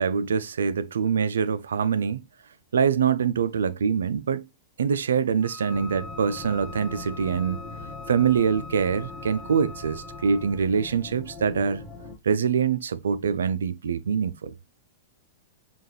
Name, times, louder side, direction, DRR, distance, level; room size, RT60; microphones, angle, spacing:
voice 1, 0.0-2.2 2.7-4.5 4.8-7.6 8.1-11.8 12.2-14.5, right 6 dB, 85° right, 0.4 m, -24 dB
Wind instrument woodwind instrument, 5.4-10.6, left 2 dB, 20° left, 0.6 m, -43 dB
sound 1, 5.7-12.2, left 3 dB, 20° right, 1.3 m, -41 dB
5.6 x 2.3 x 3.2 m
hypercardioid pair, 110°, 0 cm